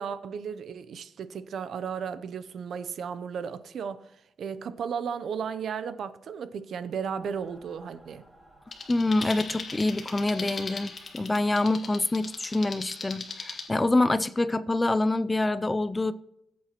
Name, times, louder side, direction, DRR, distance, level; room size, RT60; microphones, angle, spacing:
voice 1, 0.0-4.1 4.4-8.2, right 7 dB, 60° right, 0.6 m, -34 dB
Mechanical fan, 7.2-14.0, right 1 dB, 10° right, 2.3 m, -59 dB
sound 1, 8.7-13.7, left 4 dB, 35° left, 1.5 m, -39 dB
voice 2, 8.9-16.1, left 2 dB, 15° left, 0.3 m, -26 dB
19.0 x 8.5 x 3.0 m
wide cardioid pair, 155°, 0 cm